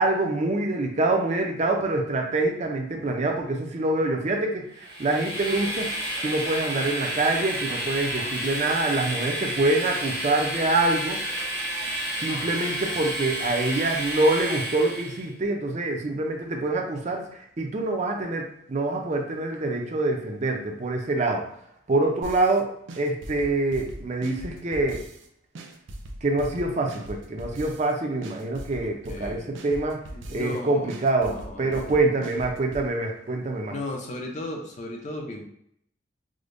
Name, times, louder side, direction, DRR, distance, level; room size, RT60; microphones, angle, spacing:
voice 1, 0.0-5.9 6.2-11.2 12.2-17.2 17.6-21.4 21.9-25.0 26.2-30.0 30.3-33.7, right 2 dB, 40° right, 2 dB, 0.5 m, -25 dB
Train, 4.8-15.2, right 1 dB, 60° right, 0.9 m, -31 dB
sound 1, 22.2-22.6 22.9-25.3 25.5-27.9 28.2-30.6 30.9-32.9, right 1 dB, 90° right, 0.5 m, -40 dB
voice 2, 28.8-29.4 30.1-30.9 31.3-32.0 33.7-35.4, left 1 dB, 40° left, 2 dB, 0.6 m, -36 dB
4.8 x 2.1 x 2.6 m, 0.69 s
head